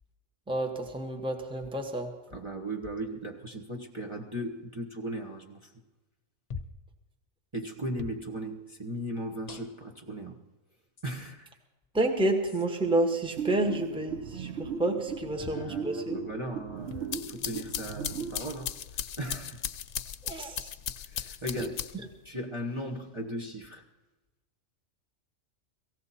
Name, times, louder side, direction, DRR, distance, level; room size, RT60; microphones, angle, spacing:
voice 1, 0.5-2.1 11.9-16.2 20.2-20.7 21.6-21.7, right 2 dB, 5° right, 4 dB, 1.1 m, -29 dB
voice 2, 2.3-5.7 7.5-10.4 11.0-11.5 15.3-19.6 21.1-21.8 22.2-23.8, right 1 dB, 25° right, -1 dB, 1.2 m, -37 dB
sound 1, 6.5-6.9 8.0-8.2 9.5-10.0 11.0-11.1 12.5-12.7 15.4-15.7 16.9-17.1 18.4-18.8 19.9-20.0 21.4-21.6, left 5 dB, 40° left, 0.7 m, -43 dB
sound 2, 13.4-18.4, right 6 dB, 60° right, 1.0 m, -37 dB
sound 3, 16.9-22.2, left 9 dB, 80° left, 1.0 m, -37 dB
18.0 x 15.5 x 4.2 m, 1.1 s
omnidirectional pair, 1.3 m